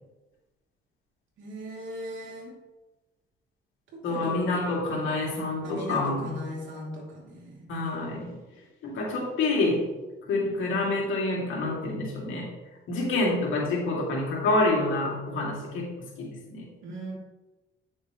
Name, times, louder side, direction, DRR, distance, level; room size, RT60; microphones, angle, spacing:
voice 1, 1.4-2.5 3.9-4.4 5.0-5.1 5.6-7.7 16.8-17.1, equal, 75° right, -3 dB, 2.9 m, -38 dB
voice 2, 4.0-6.3 7.7-8.3 8.8-9.8 10.2-12.5 12.9-16.6, left 2 dB, 80° left, -3 dB, 2.7 m, -27 dB
9.4 x 6.4 x 3.2 m, 1.1 s
cardioid pair, 90°, 20 cm